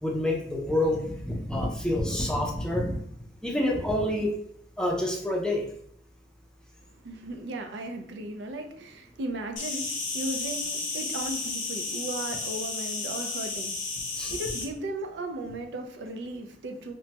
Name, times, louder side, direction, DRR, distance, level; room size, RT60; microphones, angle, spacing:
voice 1, 0.0-3.0 3.4-4.3 4.8-5.6 14.2-14.4, left 1 dB, 5° left, -1 dB, 0.4 m, -27 dB
voice 2, 7.0-13.8 14.2-16.9, right 2 dB, 75° right, 4 dB, 0.4 m, -36 dB
Insect, 9.6-14.6, left 3 dB, 50° left, 0.6 m, -33 dB
3.1 x 2.1 x 2.8 m, 0.69 s
head